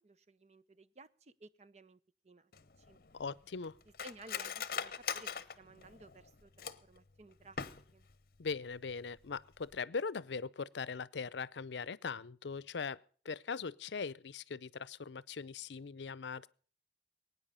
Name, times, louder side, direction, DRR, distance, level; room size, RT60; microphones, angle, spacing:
voice 1, 0.0-2.0 2.2-2.5 2.8-3.0 4.0-5.3 5.6-7.6 7.9-8.1, right 2 dB, 35° right, 0.7 m, -56 dB
Cutlery silverware, 2.5-7.0 7.4-8.1 8.5-8.6 8.9-9.3 9.6-9.8, left 7 dB, 55° left, 0.8 m, -42 dB
voice 2, 3.1-3.8 8.4-16.5, left 5 dB, 80° left, 0.6 m, -40 dB
21.5 x 9.6 x 5.6 m
head